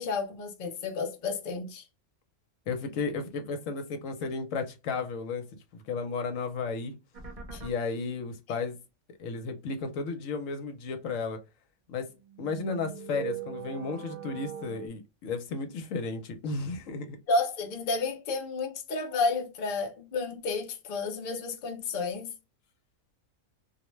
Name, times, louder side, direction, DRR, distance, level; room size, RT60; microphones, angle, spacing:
voice 1, 0.0-1.8 7.5-7.6 8.5-8.6 17.3-22.3, left 3 dB, 50° left, 0.6 m, -31 dB
voice 2, 2.7-5.5 5.7-7.0 7.6-8.8 9.2-11.4 11.9-12.1 12.4-17.2, left 4 dB, 75° left, 1.0 m, -33 dB
sound 1, 7.1-7.7 12.1-14.9, right 7 dB, 35° right, 0.7 m, -40 dB
2.4 x 2.1 x 3.0 m
omnidirectional pair, 1.4 m